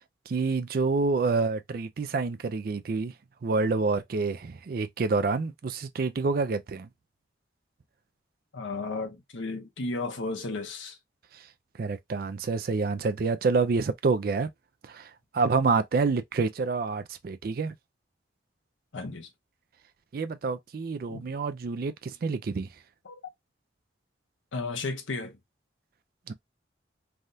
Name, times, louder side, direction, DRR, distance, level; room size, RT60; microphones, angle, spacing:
voice 1, 0.3-3.1 3.4-6.9 11.8-14.5 14.8-15.1 15.3-17.7 20.1-22.7 26.3-26.4, right 4 dB, 50° right, 0.3 m, -27 dB
voice 2, 8.5-11.0 18.9-19.3 21.1-21.2 23.0-23.2 24.5-25.4, left 3 dB, 85° left, 0.9 m, -34 dB
3.4 x 2.3 x 2.6 m
head